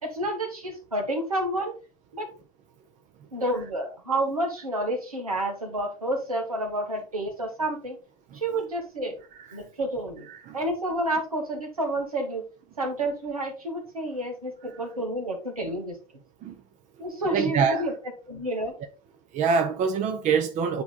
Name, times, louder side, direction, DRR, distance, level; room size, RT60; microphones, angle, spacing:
voice 1, 0.0-1.8 2.1-2.3 3.3-8.0 8.3-9.2 9.5-10.3 10.5-12.5 12.8-16.0 17.0-17.9 18.3-18.7, right 1 dB, 85° right, 2.1 m, -29 dB
voice 2, 17.2-17.9 19.3-20.8, right 6 dB, 45° right, 1.0 m, -25 dB
9.3 x 3.6 x 3.9 m
figure-of-eight pair, 75°, 18 cm